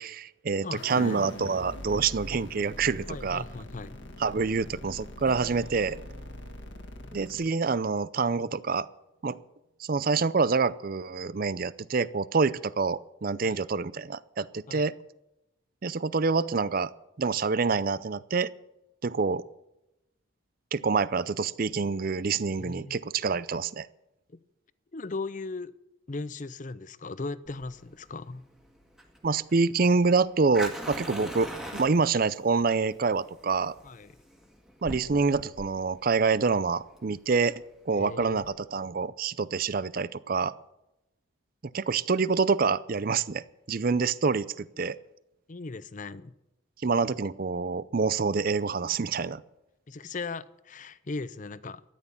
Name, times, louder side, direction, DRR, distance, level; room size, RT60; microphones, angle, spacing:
voice 1, 0.0-3.4 4.2-6.0 7.1-8.9 9.2-9.4 9.8-14.9 15.8-16.9 17.2-18.5 19.0-19.4 20.7-23.9 29.2-33.7 34.8-37.5 37.9-40.5 41.7-45.0 46.8-49.4, right 4 dB, 45° right, 0.5 m, -27 dB
voice 2, 0.6-1.2 3.1-4.0 13.4-13.6 14.7-14.8 22.6-22.9 24.3-24.4 24.9-25.7 26.1-28.5 33.8-34.1 37.9-38.4 45.5-46.3 49.9-51.8, left 3 dB, 40° left, 0.6 m, -38 dB
sound 1, 0.8-7.5, left 1 dB, 60° left, 1.9 m, -42 dB
Strum, 5.2-9.9, right 2 dB, 65° right, 2.0 m, -53 dB
Fire, 27.5-38.5, right 1 dB, ahead, 1.7 m, -42 dB
13.5 x 10.5 x 7.0 m
head